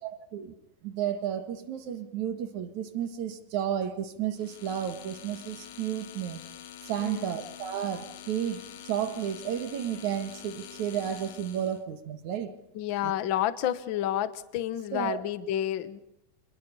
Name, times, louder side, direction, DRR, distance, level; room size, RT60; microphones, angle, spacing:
voice 1, 0.0-0.5 0.8-6.4 6.8-12.5 13.0-13.1 14.9-15.2, right 9 dB, 70° right, 10 dB, 3.2 m, -32 dB
sound 1, 4.4-11.8, left 10 dB, 85° left, 3.0 m, -46 dB
voice 2, 7.0-7.4 12.7-16.0, left 11 dB, 55° left, 15 dB, 1.4 m, -30 dB
27.5 x 20.5 x 5.4 m, 0.84 s
omnidirectional pair, 3.5 m